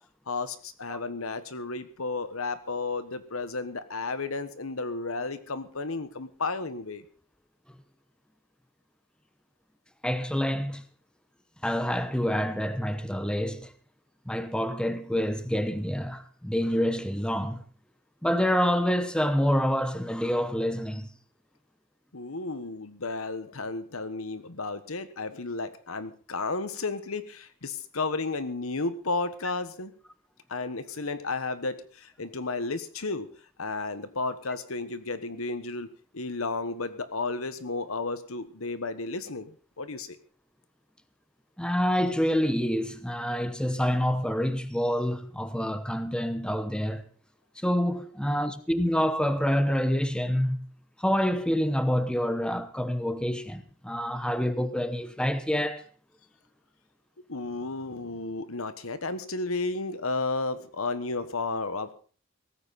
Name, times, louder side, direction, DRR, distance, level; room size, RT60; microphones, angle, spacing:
voice 1, 0.3-7.0 22.1-29.9 30.5-33.3 33.6-40.2 57.3-61.9, left 3 dB, 85° left, 1.4 m, -33 dB
voice 2, 10.0-10.8 11.6-13.7 14.3-17.6 18.2-21.1 41.6-47.0 47.6-50.7 51.0-55.8, equal, 5° left, 0.9 m, -27 dB
17.0 x 14.5 x 4.2 m
head